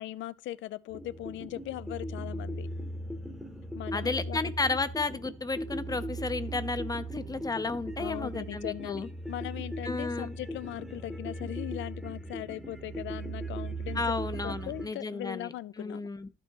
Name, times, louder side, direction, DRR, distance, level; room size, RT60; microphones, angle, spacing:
voice 1, 0.0-2.7 3.7-4.5 8.0-14.1 14.4-16.1, left 15 dB, 70° left, 0.4 m, -39 dB
sound 1, 0.9-14.9, right 1 dB, ahead, 0.9 m, -38 dB
voice 2, 3.9-9.1 9.8-10.3 14.0-15.5 15.8-16.3, left 3 dB, 20° left, 0.5 m, -33 dB
12.0 x 4.5 x 2.9 m
cardioid pair, 90°, 20 cm